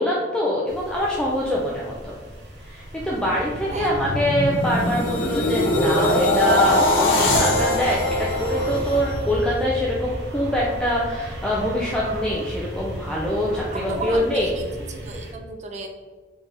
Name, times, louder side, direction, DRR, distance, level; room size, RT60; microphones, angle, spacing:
voice 1, 0.0-2.2 2.6-14.5, equal, 5° left, -5 dB, 0.5 m, -24 dB
sound 1, 0.7-15.3, equal, 65° right, 1.1 m, -34 dB
sound 2, 3.4-9.6 10.0-10.3, left 1 dB, 85° left, 0.9 m, -22 dB
voice 2, 13.7-15.9, right 3 dB, 40° right, 4 dB, 0.6 m, -34 dB
4.0 x 3.5 x 3.3 m, 1.4 s
head